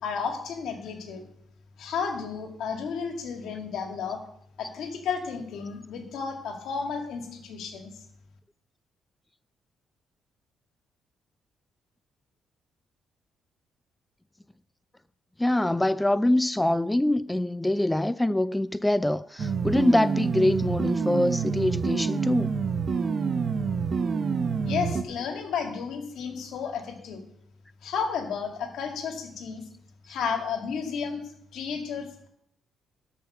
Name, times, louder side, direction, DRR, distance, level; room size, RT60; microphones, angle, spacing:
voice 1, 0.0-1.2 1.8-4.2 4.6-7.9 24.6-27.2 27.8-29.6 30.1-31.2 31.5-32.3, left 6 dB, 75° left, 2.0 m, -32 dB
voice 2, 15.4-22.5, left 1 dB, 10° left, 0.4 m, -24 dB
sound 1, 19.4-25.0, right 5 dB, 45° right, 1.0 m, -27 dB
12.5 x 5.6 x 6.8 m
cardioid pair, 90°, 0 cm